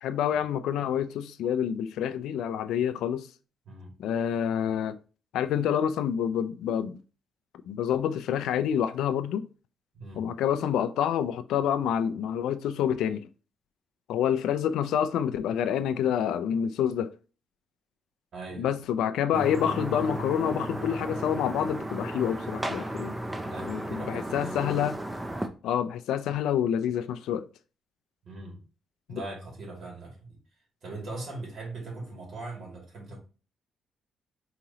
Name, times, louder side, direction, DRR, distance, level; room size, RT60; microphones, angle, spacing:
voice 1, 0.0-3.3 4.0-5.0 5.3-7.0 7.7-9.5 10.2-13.3 14.1-17.1 18.6-23.2 23.7-25.0 25.6-27.5 29.1-29.2, left 9 dB, 90° left, 0.3 m, -27 dB
voice 2, 9.9-10.3 18.3-18.7 23.4-24.6 28.2-28.6 29.1-30.4 30.8-33.2, right 2 dB, 60° right, 2.2 m, -40 dB
sound 1, 19.3-25.5, right 1 dB, 15° right, 0.6 m, -34 dB
4.8 x 3.0 x 2.8 m
cardioid pair, 90°, 0 cm